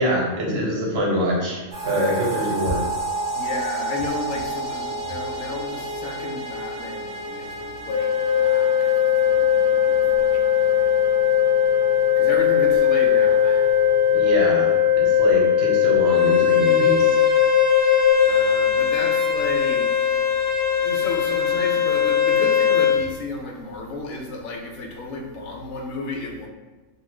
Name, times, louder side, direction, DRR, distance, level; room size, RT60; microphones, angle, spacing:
voice 1, 0.0-1.6 1.8-2.8 14.1-17.2, equal, 55° right, -4 dB, 0.8 m, -24 dB
sound 1, 1.7-14.7, right 1 dB, 15° right, 0.8 m, -32 dB
voice 2, 3.3-10.9 12.1-13.8 17.9-20.4 20.8-26.5, left 2 dB, 80° left, 2 dB, 1.0 m, -33 dB
Organ, 7.9-18.9, left 9 dB, 15° left, 0.7 m, -19 dB
Bowed string instrument, 16.1-23.0, left 7 dB, 50° left, 0.8 m, -22 dB
2.7 x 2.4 x 3.0 m, 1.3 s
omnidirectional pair, 1.4 m